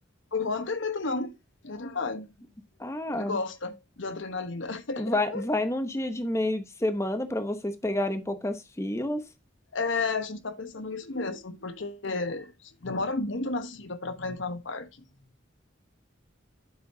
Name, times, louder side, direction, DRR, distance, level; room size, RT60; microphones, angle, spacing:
voice 1, 0.3-1.4 1.6-2.3 3.1-5.4 9.7-14.9, left 3 dB, 75° left, 1.1 m, -32 dB
voice 2, 2.8-3.4 5.0-9.2, left 1 dB, 15° left, 0.9 m, -29 dB
8.8 x 8.1 x 2.7 m
head